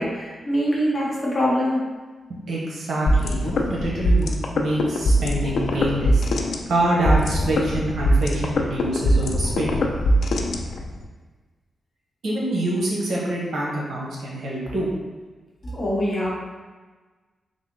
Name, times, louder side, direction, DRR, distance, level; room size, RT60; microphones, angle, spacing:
voice 1, 0.0-1.8 15.6-16.3, equal, 25° left, -5 dB, 0.9 m, -23 dB
voice 2, 2.3-6.2 6.7-9.8 12.2-14.9, right 1 dB, 75° right, -5 dB, 0.9 m, -26 dB
sound 1, 3.1-11.0, equal, 80° left, 0.3 m, -22 dB
3.6 x 2.1 x 3.6 m, 1.3 s
wide cardioid pair, 130°, 0 cm